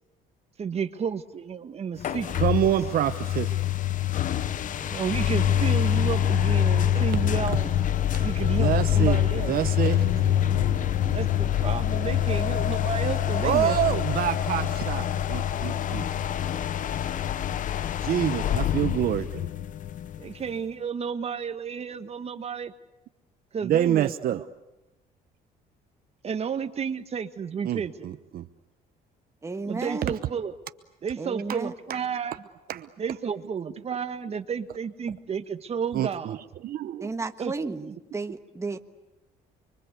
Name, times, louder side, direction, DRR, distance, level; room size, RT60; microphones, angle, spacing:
voice 1, 0.6-2.4 4.8-7.7 8.2-9.5 11.0-14.0 20.2-22.7 23.5-24.4 26.2-28.1 29.6-30.5 31.0-32.4 33.0-36.4 37.4-37.5 37.9-38.0, right 6 dB, 35° right, 10 dB, 1.5 m, -32 dB
sound 1, 2.0-20.5, left 10 dB, 50° left, 0.9 m, -25 dB
voice 2, 2.3-3.6 8.1-8.3 8.6-9.2 9.5-10.4 13.4-16.1 18.0-19.5 23.6-24.4 27.6-28.5 31.9-32.0 32.7-32.9 35.9-36.4 36.6-37.1, right 11 dB, 60° right, 10 dB, 0.9 m, -27 dB
voice 3, 29.4-30.1 31.2-31.7 37.0-38.8, right 3 dB, 15° right, 7 dB, 1.4 m, -33 dB
30.0 x 23.5 x 8.2 m, 0.98 s
cardioid pair, 110°, 17 cm